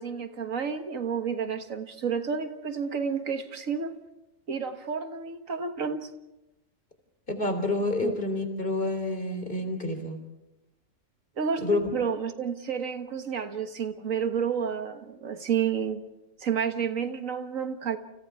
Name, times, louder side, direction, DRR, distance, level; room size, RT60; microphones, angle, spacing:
voice 1, 0.0-3.9 4.5-6.1 8.0-8.1 11.4-16.0 16.4-18.0, right 6 dB, 85° right, 7 dB, 1.8 m, -30 dB
voice 2, 7.3-10.2 11.6-11.9, left 2 dB, 40° left, 5 dB, 3.8 m, -28 dB
30.0 x 29.5 x 3.6 m, 0.95 s
omnidirectional pair, 1.4 m